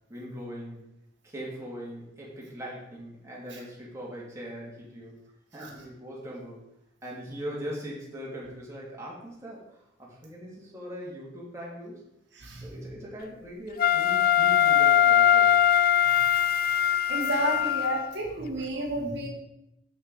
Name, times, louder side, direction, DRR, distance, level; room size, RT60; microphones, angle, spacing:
voice 1, 0.1-0.8 1.2-5.2 5.5-6.6 7.0-12.0 12.6-15.6, equal, 15° right, -5 dB, 2.3 m, -40 dB
Wind instrument woodwind instrument, 13.8-18.1, left 10 dB, 50° left, 0.3 m, -21 dB
voice 2, 17.1-19.3, right 1 dB, 65° right, -1 dB, 1.5 m, -31 dB
7.1 x 6.6 x 4.7 m, 0.83 s
head